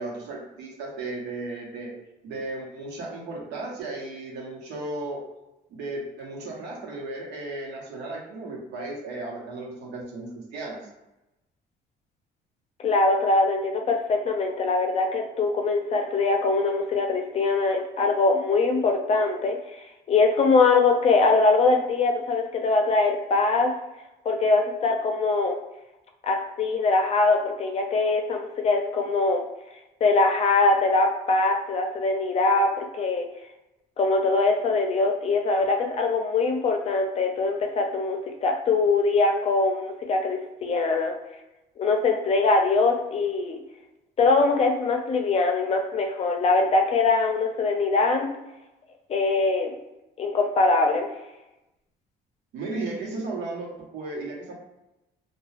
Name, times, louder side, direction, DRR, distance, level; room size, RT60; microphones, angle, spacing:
voice 1, 0.0-1.9 2.2-5.2 5.7-10.8 52.5-54.5, right 2 dB, 90° right, -3 dB, 0.9 m, -35 dB
voice 2, 12.8-19.6 20.1-23.7 24.2-25.6 26.2-29.4 30.0-33.3 34.0-41.2 41.8-43.6 44.2-48.3 49.1-49.7 50.2-51.1, left 3 dB, 40° left, 3 dB, 0.5 m, -22 dB
2.3 x 2.3 x 3.2 m, 0.96 s
cardioid pair, 110°, 17 cm